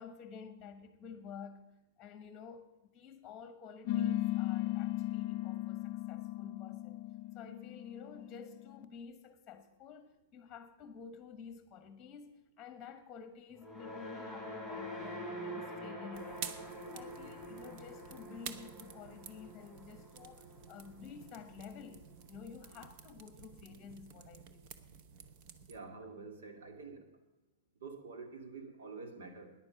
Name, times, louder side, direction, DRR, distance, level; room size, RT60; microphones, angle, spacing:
voice 1, 0.0-1.6 2.0-2.7 2.9-7.0 7.3-16.5 16.9-24.6, left 6 dB, 15° left, 10 dB, 1.2 m, -51 dB
sound 1, 3.9-8.8, left 13 dB, 35° left, 0.4 m, -36 dB
sound 2, 13.5-21.9, equal, 10° right, 5.1 m, -46 dB
sound 3, 16.1-25.8, right 7 dB, 40° right, 0.9 m, -51 dB
voice 2, 25.7-27.1 27.8-29.5, right 4 dB, 90° right, 5 dB, 2.5 m, -47 dB
14.0 x 10.0 x 5.9 m, 0.99 s
supercardioid pair, 170°, 0 cm